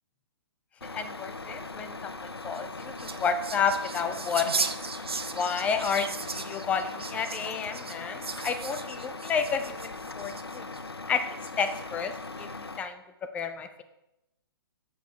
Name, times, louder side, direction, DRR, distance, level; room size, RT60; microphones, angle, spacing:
Truck, 0.8-12.8, left 3 dB, 90° left, 0.4 m, -40 dB
voice 1, 0.9-4.8 5.3-10.7 11.1-12.1 12.4-13.0 13.3-13.8, left 6 dB, 10° left, 8 dB, 0.4 m, -31 dB
sound 1, 2.4-10.8 11.4-12.0, right 4 dB, 75° right, 0.5 m, -37 dB
6.7 x 6.3 x 3.3 m, 0.90 s
figure-of-eight pair, 120°, 13 cm